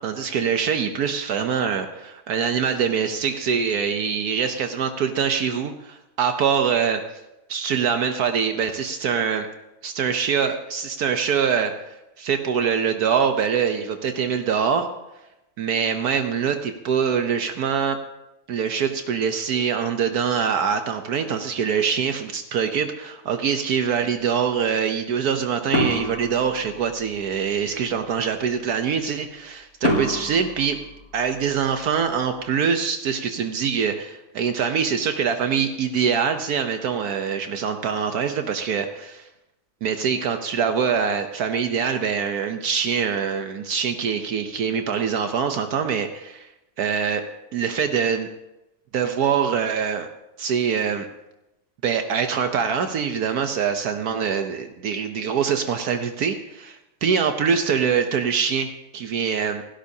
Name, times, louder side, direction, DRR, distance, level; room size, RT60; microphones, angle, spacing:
voice 1, 0.0-7.0 7.5-9.5 9.8-11.7 12.2-14.9 15.6-18.0 18.5-30.8 31.1-39.2 39.8-46.5 46.8-47.2 47.5-48.3 48.9-50.1 50.4-51.1 51.8-59.6, right 7 dB, 70° right, 6 dB, 1.3 m, -24 dB
sound 1, 25.7-27.2 29.8-31.7, left 1 dB, 70° left, 4.0 m, -27 dB
28.5 x 11.5 x 2.8 m, 0.94 s
omnidirectional pair, 1.7 m